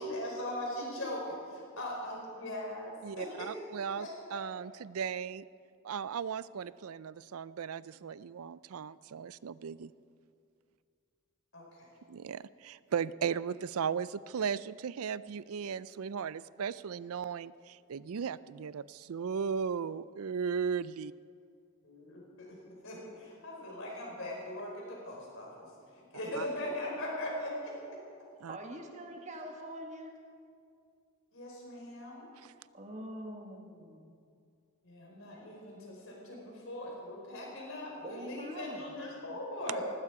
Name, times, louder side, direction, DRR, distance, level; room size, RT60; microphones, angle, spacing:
voice 1, 0.0-1.4 1.8-3.5 3.9-4.4 11.5-11.9 21.8-28.0 31.3-32.2 34.8-39.8, left 1 dB, 60° left, -2 dB, 4.9 m, -40 dB
voice 2, 3.0-5.4 5.8-9.9 12.1-21.1 26.4-26.5 28.4-28.6 32.4-32.5, right 7 dB, 75° right, 18 dB, 0.4 m, -36 dB
voice 3, 28.5-30.1 32.7-34.0 38.0-38.9, right 1 dB, 30° right, 2 dB, 1.8 m, -44 dB
19.0 x 15.5 x 4.8 m, 2.4 s
head